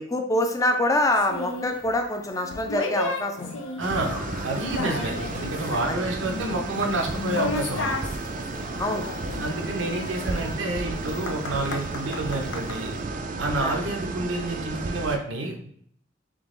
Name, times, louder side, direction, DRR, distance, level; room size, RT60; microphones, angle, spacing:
voice 1, 0.0-3.5 4.8-5.0 5.9-6.0 8.8-9.1 13.6-13.8, left 1 dB, 20° left, 5 dB, 0.5 m, -25 dB
sound 1, 1.1-12.8, left 3 dB, 75° left, 0.6 m, -34 dB
sound 2, 3.8-15.2, right 3 dB, 45° right, 0.4 m, -33 dB
voice 2, 3.8-7.9 9.4-12.9 13.4-15.7, right 2 dB, 85° right, 2 dB, 0.8 m, -29 dB
3.8 x 3.0 x 3.7 m, 0.63 s
head